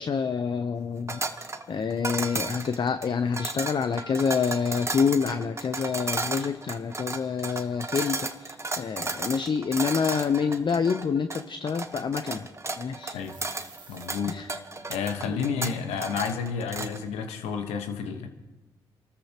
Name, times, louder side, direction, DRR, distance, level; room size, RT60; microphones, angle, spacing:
voice 1, 0.0-12.5 12.8-13.2 14.3-14.5 15.2-15.4, left 6 dB, 50° left, 9 dB, 0.7 m, -27 dB
sound 1, 1.1-17.0, right 3 dB, 25° right, 1.2 m, -34 dB
sound 2, 13.0-14.1, right 4 dB, 45° right, 2.0 m, -51 dB
voice 2, 13.9-14.4 14.9-18.3, left 6 dB, 80° left, 6 dB, 1.3 m, -30 dB
28.0 x 13.5 x 3.0 m, 1.1 s
hypercardioid pair, 45°, 11 cm